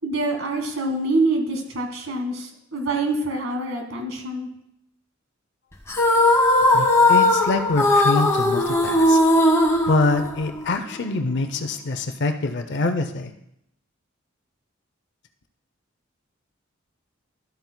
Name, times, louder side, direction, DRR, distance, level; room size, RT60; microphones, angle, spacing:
voice 1, 0.0-4.5, right 2 dB, 85° right, 4 dB, 1.5 m, -25 dB
sound 1, 5.9-10.7, left 1 dB, 15° left, 1.1 m, -18 dB
voice 2, 6.7-9.2 9.9-13.3, left 3 dB, 60° left, 7 dB, 0.5 m, -25 dB
12.0 x 8.0 x 2.2 m, 0.78 s
head